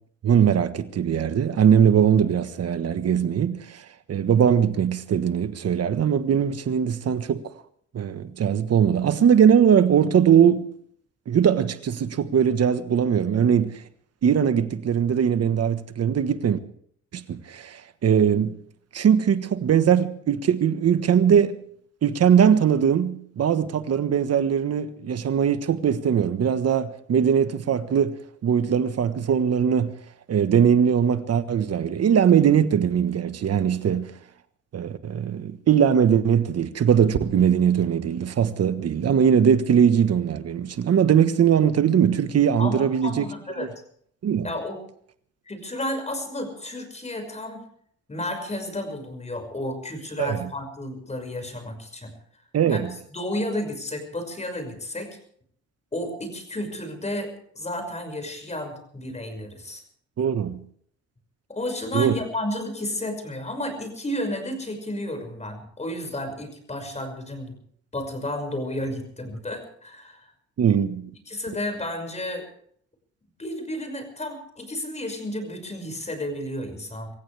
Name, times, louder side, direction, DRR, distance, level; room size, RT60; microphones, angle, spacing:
voice 1, 0.2-3.8 4.1-7.4 7.9-10.7 11.3-13.7 14.2-16.6 17.1-18.5 18.9-21.5 22.0-28.1 28.4-29.9 30.3-34.1 34.7-43.3 43.6-43.7 44.2-44.5 50.2-50.4 52.5-52.9 60.2-60.6 61.9-62.1 70.6-71.1, right 8 dB, 55° right, 1.4 m, -20 dB
voice 2, 42.6-43.7 44.4-44.8 45.5-47.6 48.1-52.1 52.7-52.8 53.1-55.1 55.9-57.3 57.5-59.8 61.5-67.6 67.9-70.3 71.3-72.5 73.4-77.1, left 1 dB, 20° left, 5.9 m, -32 dB
25.5 x 15.5 x 3.5 m
cardioid pair, 90°, 30 cm